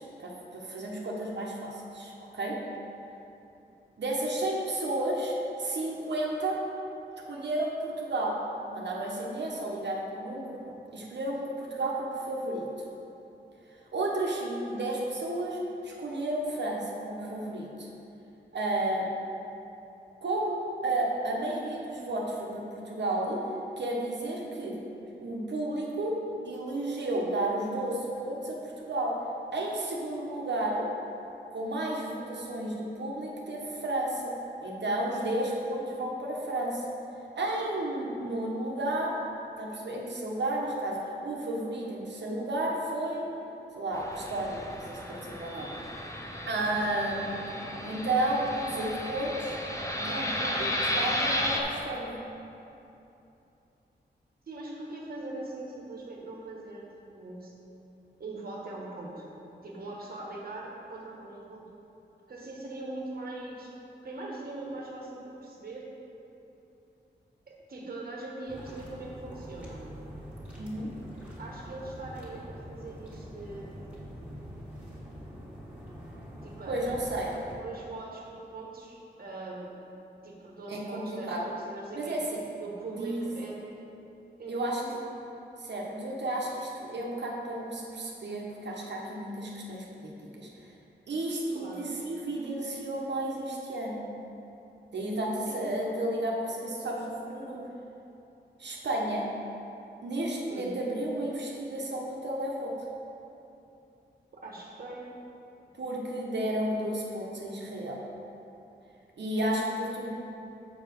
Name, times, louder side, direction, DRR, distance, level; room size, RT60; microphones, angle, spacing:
voice 1, 0.0-2.6 4.0-6.6 7.3-8.3 8.7-12.6 13.9-17.9 18.5-19.1 20.2-23.4 23.8-24.7 25.2-26.1 26.4-29.1 29.5-30.8 31.5-34.3 34.6-37.0 37.4-39.2 39.6-43.2 43.8-45.7 46.5-47.5 47.8-49.6 49.9-52.2 70.6-70.9 76.7-77.3 80.7-81.4 81.9-82.2 83.0-83.3 84.5-84.8 85.6-90.5 91.1-94.0 94.9-97.6 98.6-99.2 100.0-102.7 105.7-108.0 109.2-110.1, right 1 dB, 70° right, -2 dB, 1.1 m, -32 dB
Fixed-wing aircraft airplane, 43.9-51.6, left 1 dB, 15° left, 0.7 m, -34 dB
voice 2, 54.5-57.5 58.2-59.3 59.6-61.7 62.3-63.7 64.0-65.9 67.5-69.9 71.4-73.8 76.4-77.1 77.3-78.2 78.5-79.7 80.2-82.2 82.6-83.6 84.4-85.1 91.5-91.9 95.4-95.9 100.5-100.8 104.3-105.1, right 2 dB, 55° right, -3 dB, 1.3 m, -41 dB
sound 1, 68.5-77.6, equal, 5° right, 1.8 m, -44 dB
7.2 x 4.8 x 5.2 m, 2.9 s
wide cardioid pair, 115°, 18 cm